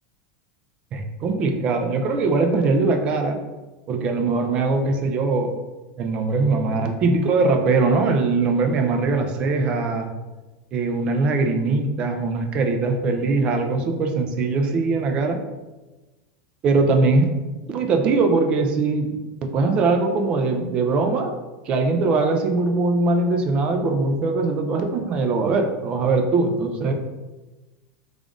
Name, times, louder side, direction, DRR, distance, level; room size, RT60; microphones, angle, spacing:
voice 1, 0.9-3.4 3.9-5.5 6.0-10.1 10.7-15.4 16.6-17.2 17.6-21.3 21.7-26.9, right 3 dB, 35° right, 4 dB, 0.5 m, -21 dB
3.3 x 2.4 x 3.7 m, 1.1 s
supercardioid pair, 135°, 3 cm